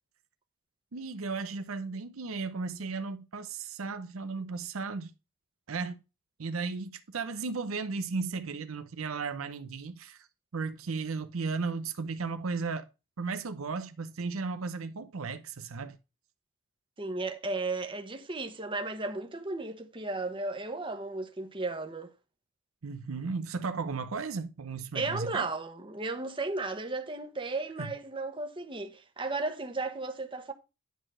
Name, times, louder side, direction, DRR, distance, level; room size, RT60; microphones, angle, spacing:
voice 1, 0.9-5.1 5.7-6.0 6.4-10.3 10.5-12.9 13.2-16.0 22.8-25.5 27.8-27.9, right 4 dB, 80° right, 0.7 m, -35 dB
voice 2, 17.0-22.1 24.9-30.5, right 3 dB, 25° right, 1.2 m, -34 dB
10.5 x 4.0 x 6.2 m
head